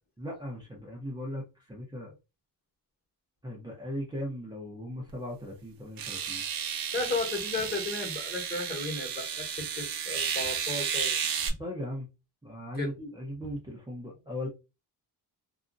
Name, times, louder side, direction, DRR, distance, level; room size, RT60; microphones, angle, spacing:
voice 1, 0.2-2.1 3.4-6.4 11.6-12.1 12.4-14.5, equal, 10° right, 0.7 m, -38 dB
sound 1, 5.1-5.2 6.0-11.5, right 7 dB, 55° right, 0.7 m, -33 dB
voice 2, 6.9-11.2 11.5-11.6 12.8-12.9 13.4-13.5, left 3 dB, 25° left, 1.2 m, -34 dB
2.8 x 2.5 x 2.5 m
cardioid pair, 135°, 40 cm